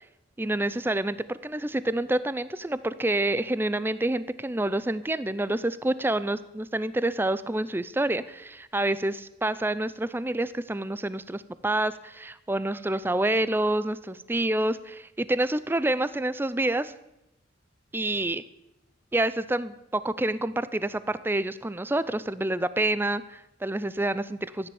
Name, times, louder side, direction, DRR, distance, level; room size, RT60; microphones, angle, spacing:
voice 1, 0.4-16.9 17.9-18.4 19.1-24.7, right 1 dB, 10° right, 15 dB, 0.4 m, -28 dB
14.0 x 10.0 x 7.1 m, 0.89 s
head